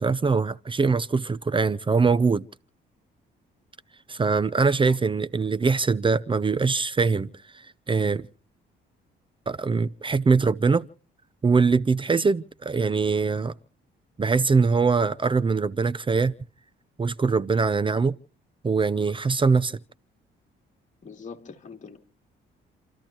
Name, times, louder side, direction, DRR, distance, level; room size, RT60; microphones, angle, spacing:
voice 1, 0.0-2.4 4.1-8.3 9.5-10.8 11.4-13.5 14.2-16.3 17.0-18.2 18.6-19.8, right 4 dB, 25° right, 0.6 m, -23 dB
voice 2, 21.0-22.0, left 5 dB, 40° left, 3.0 m, -42 dB
29.5 x 13.5 x 3.0 m
cardioid pair, 90°, 20 cm